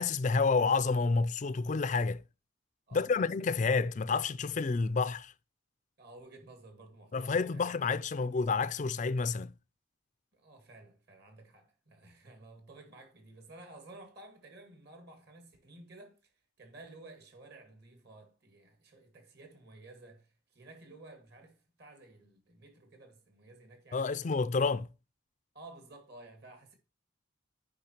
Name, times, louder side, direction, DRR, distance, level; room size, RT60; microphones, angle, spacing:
voice 1, 0.0-2.2 2.9-5.3 7.1-9.5 23.9-24.9, left 4 dB, 35° left, 0.4 m, -29 dB
voice 2, 2.9-3.4 6.0-7.8 10.3-24.3 25.5-26.7, right 2 dB, 50° right, 2.1 m, -54 dB
8.7 x 5.5 x 2.9 m
head